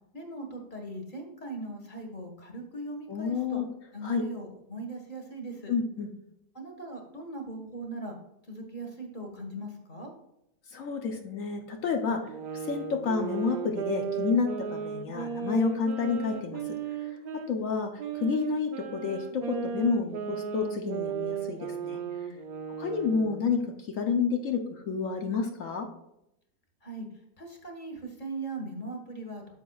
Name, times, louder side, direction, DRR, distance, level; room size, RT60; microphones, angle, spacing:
voice 1, 0.1-3.6 3.9-5.7 6.5-8.2 8.5-10.1 26.8-27.1 27.4-29.6, right 2 dB, 30° left, 2 dB, 1.4 m, -39 dB
voice 2, 3.1-3.7 4.0-4.2 5.7-6.1 10.7-12.2 12.5-17.2 17.5-22.0 22.8-25.9, left 5 dB, 60° left, 4 dB, 1.0 m, -30 dB
sound 1, 12.3-17.5 18.0-23.6, right 7 dB, 80° right, 0.4 m, -36 dB
9.3 x 7.2 x 2.3 m, 0.81 s
omnidirectional pair, 1.8 m